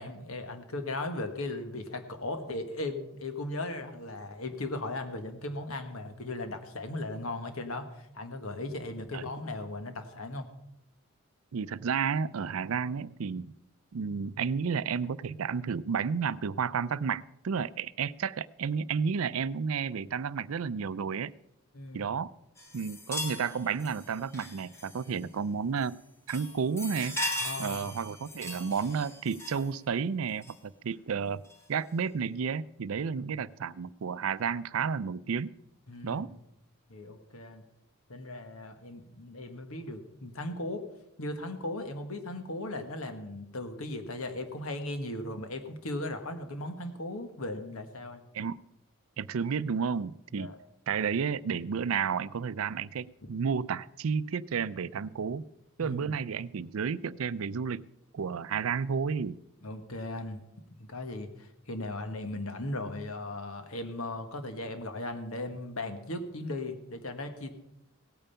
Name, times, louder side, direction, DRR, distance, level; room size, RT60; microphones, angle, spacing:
voice 1, 0.0-10.5 21.7-22.1 27.4-27.9 33.3-33.4 35.9-36.2 36.9-37.6 38.1-40.9 41.2-48.2 50.3-50.5 53.2-53.3 55.8-56.2 59.6-60.4 60.8-67.5, left 2 dB, 80° left, 7 dB, 1.5 m, -37 dB
voice 2, 11.5-13.5 13.9-21.3 21.9-22.3 22.7-26.0 26.3-27.2 27.6-31.4 31.7-35.5 36.0-36.4 48.3-48.6 49.2-50.5 50.9-55.5 55.8-57.9 58.1-59.4, right 6 dB, 80° right, 17 dB, 0.4 m, -31 dB
sound 1, 22.6-25.2 25.8-26.0 26.3-29.8 30.4-30.6 31.5-31.6, left 1 dB, 10° left, 1.7 m, -39 dB
17.0 x 8.9 x 5.6 m, 0.83 s
head